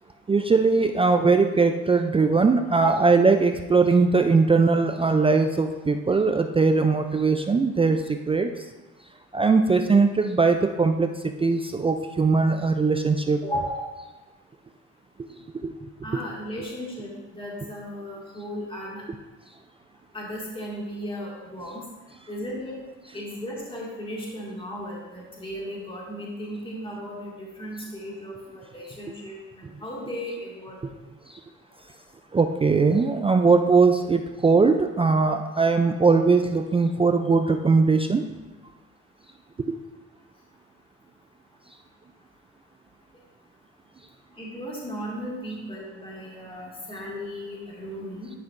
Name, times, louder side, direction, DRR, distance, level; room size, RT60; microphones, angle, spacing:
voice 1, 0.3-8.6 9.3-13.4 15.3-15.7 16.1-16.2 32.3-38.2 39.6-39.8, right 4 dB, 20° right, 6 dB, 0.3 m, -20 dB
voice 2, 13.4-13.9 16.0-19.0 20.1-21.8 22.3-22.8 23.1-30.8 44.4-48.3, equal, 15° left, -4 dB, 2.0 m, -35 dB
10.5 x 5.6 x 2.5 m, 1.2 s
cardioid pair, 90°, 30 cm